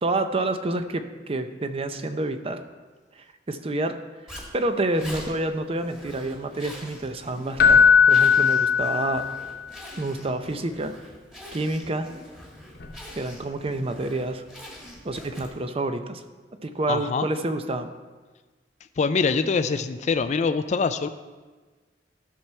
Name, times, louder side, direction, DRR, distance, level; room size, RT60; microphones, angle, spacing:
voice 1, 0.0-2.6 3.5-4.0 4.5-9.3 10.0-10.9 11.5-12.1 13.2-14.4 15.0-16.2 16.6-17.9, right 2 dB, 35° right, 9 dB, 0.6 m, -28 dB
Zipper (clothing), 4.3-15.7, equal, 5° right, 1.6 m, -44 dB
Keyboard (musical), 7.6-9.5 12.8-13.0, left 6 dB, 60° left, 0.8 m, -18 dB
voice 2, 16.9-17.3 19.0-21.1, left 4 dB, 40° left, 10 dB, 0.4 m, -24 dB
13.0 x 6.1 x 4.3 m, 1.3 s
head